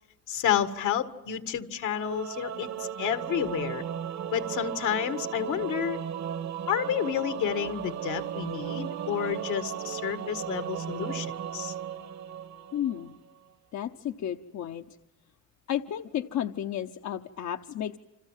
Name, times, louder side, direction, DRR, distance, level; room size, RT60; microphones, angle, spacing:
voice 1, 0.3-3.8 4.3-6.0 6.7-11.3 11.5-11.7, left 9 dB, 80° left, 10 dB, 1.8 m, -30 dB
Singing / Musical instrument, 1.9-13.2, right 9 dB, 60° right, 1.4 m, -36 dB
voice 2, 12.7-13.1 13.7-15.0 15.7-18.0, left 10 dB, 65° left, 6 dB, 0.9 m, -32 dB
28.5 x 26.0 x 7.4 m, 0.99 s
cardioid pair, 90°, 30 cm